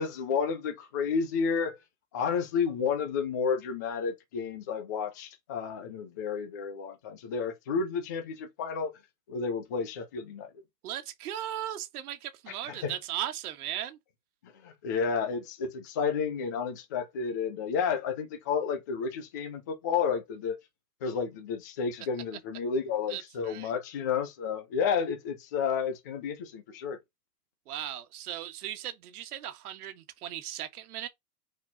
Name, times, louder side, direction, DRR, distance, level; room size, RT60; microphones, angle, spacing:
voice 1, 0.0-1.8 2.1-8.9 9.3-10.5 12.6-12.9 14.4-20.6 21.0-27.0, left 6 dB, 15° left, 0.3 m, -31 dB
voice 2, 10.8-14.0 23.1-23.7 27.7-31.1, right 11 dB, 65° right, 1.5 m, -37 dB
6.2 x 4.3 x 4.1 m
supercardioid pair, 155°, 48 cm